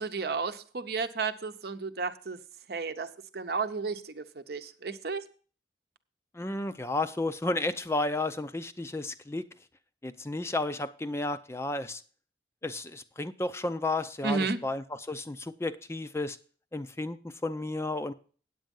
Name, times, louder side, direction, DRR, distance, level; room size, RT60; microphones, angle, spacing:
voice 1, 0.0-2.4 2.7-3.1 3.3-5.2 14.2-14.6, right 4 dB, 60° right, 9 dB, 0.8 m, -32 dB
voice 2, 6.3-9.4 10.0-12.0 12.6-16.4 16.7-18.1, left 2 dB, 15° left, 11 dB, 0.4 m, -32 dB
8.9 x 8.3 x 5.3 m, 0.41 s
head